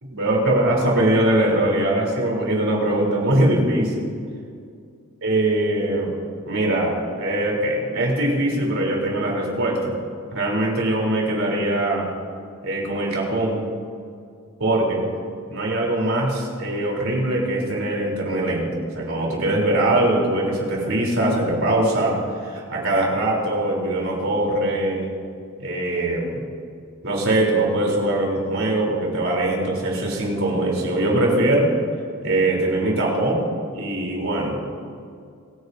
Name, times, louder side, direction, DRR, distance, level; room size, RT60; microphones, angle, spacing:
voice 1, 0.0-4.1 5.2-6.2 6.5-9.9 10.3-12.1 12.6-13.6 14.6-15.0 15.5-18.7 19.0-25.1 25.6-26.4 27.0-31.7 32.2-33.4 33.7-34.6, right 1 dB, 70° right, -2 dB, 3.7 m, -22 dB
24.5 x 10.0 x 2.8 m, 2.3 s
head